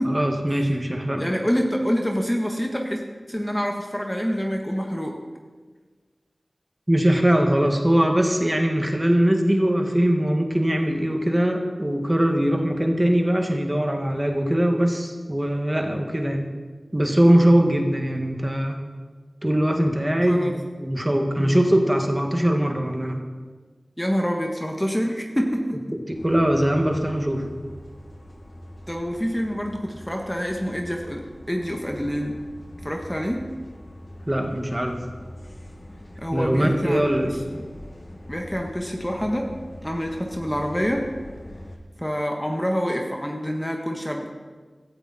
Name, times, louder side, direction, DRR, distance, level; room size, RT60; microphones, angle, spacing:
voice 1, 0.1-1.2 6.9-16.5 16.9-18.8 19.4-23.2 26.1-27.5 34.3-35.0 36.3-37.4, right 1 dB, 20° right, 3 dB, 1.9 m, -21 dB
voice 2, 1.2-5.2 20.3-20.5 21.4-21.6 24.0-25.8 28.9-32.4 32.8-33.5 36.2-37.1 38.3-39.5 39.8-41.1 42.0-44.3, equal, 10° left, 2 dB, 1.5 m, -26 dB
sound 1, 26.1-41.8, equal, 45° left, 1.7 m, -42 dB
16.5 x 14.0 x 4.3 m, 1.4 s
wide cardioid pair, 60°, 0 cm